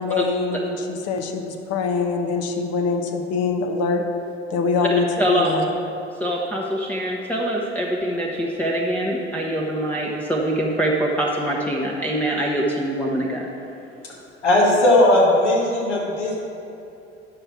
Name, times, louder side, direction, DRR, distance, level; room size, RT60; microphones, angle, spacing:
voice 1, 0.0-4.0 4.5-5.7, left 4 dB, 45° left, 4 dB, 1.0 m, -24 dB
voice 2, 5.2-5.5 6.2-13.4, right 1 dB, 5° left, -4 dB, 0.9 m, -24 dB
voice 3, 14.4-16.4, left 1 dB, 75° left, -4 dB, 1.8 m, -17 dB
9.8 x 6.6 x 4.5 m, 2.7 s
figure-of-eight pair, 60°, 35 cm